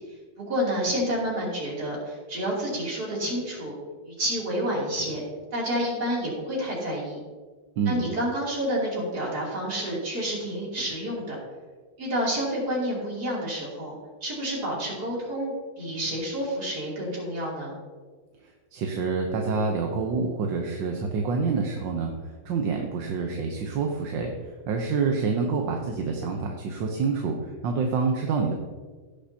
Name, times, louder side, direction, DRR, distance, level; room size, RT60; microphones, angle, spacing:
voice 1, 0.4-3.7 4.0-5.2 5.5-7.2 7.9-11.4 12.0-13.9 14.2-17.7, equal, 50° right, -4 dB, 3.4 m, -29 dB
voice 2, 7.8-8.1 18.7-22.1 22.4-28.5, right 4 dB, 70° right, 2 dB, 1.5 m, -27 dB
16.5 x 6.9 x 2.8 m, 1.4 s
omnidirectional pair, 2.2 m